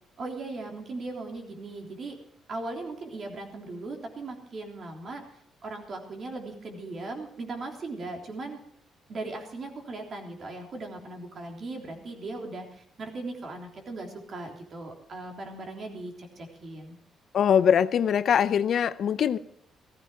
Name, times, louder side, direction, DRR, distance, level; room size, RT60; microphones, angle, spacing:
voice 1, 0.2-2.2 2.5-5.2 5.6-8.6 9.1-17.0, right 2 dB, 50° right, 3.5 m, -38 dB
voice 2, 17.3-19.4, left 8 dB, 60° left, 0.5 m, -22 dB
15.5 x 14.5 x 4.5 m
cardioid pair, 90°, 0 cm